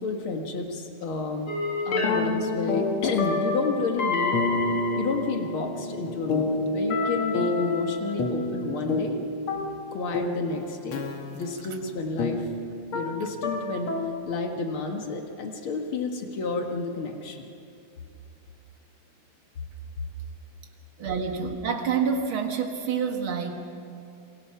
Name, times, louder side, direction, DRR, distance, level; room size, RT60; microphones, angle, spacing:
voice 1, 0.0-1.5 1.8-4.4 4.9-9.2 9.9-12.4 12.9-13.9 14.2-17.5, left 4 dB, 75° left, 3 dB, 1.2 m, -31 dB
sound 1, 1.5-14.1, left 3 dB, 50° left, 1.6 m, -28 dB
voice 2, 21.0-23.5, right 6 dB, 55° right, 3 dB, 1.4 m, -27 dB
28.0 x 24.0 x 5.8 m, 2.6 s
omnidirectional pair, 4.8 m